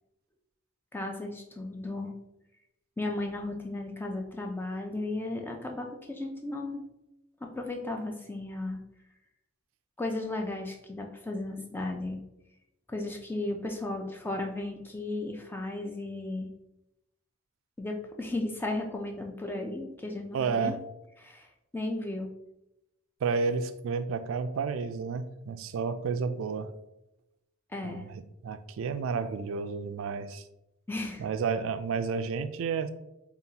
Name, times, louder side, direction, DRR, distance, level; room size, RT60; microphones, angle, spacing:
voice 1, 0.9-2.1 3.0-6.8 7.4-8.8 10.0-12.2 12.9-16.5 17.8-20.8 21.2-21.5 21.7-22.3 27.7-28.1 30.9-31.2, left 2 dB, 10° left, 2 dB, 0.4 m, -35 dB
voice 2, 20.3-20.8 23.2-26.7 27.8-30.4 31.2-32.9, right 5 dB, 70° right, 10 dB, 0.3 m, -31 dB
5.1 x 2.4 x 2.8 m, 0.88 s
head